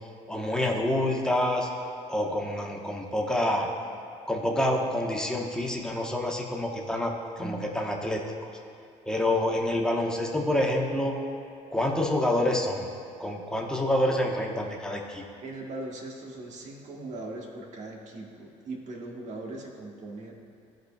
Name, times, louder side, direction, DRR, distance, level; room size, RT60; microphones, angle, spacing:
voice 1, 0.3-1.7 2.1-3.7 4.3-8.5 9.1-11.2 11.7-12.9 13.2-15.2, left 1 dB, 5° left, 0 dB, 1.2 m, -27 dB
voice 2, 15.4-20.3, right 2 dB, 55° right, 0 dB, 1.5 m, -39 dB
14.5 x 5.1 x 2.4 m, 2.5 s
supercardioid pair, 70°, 15 cm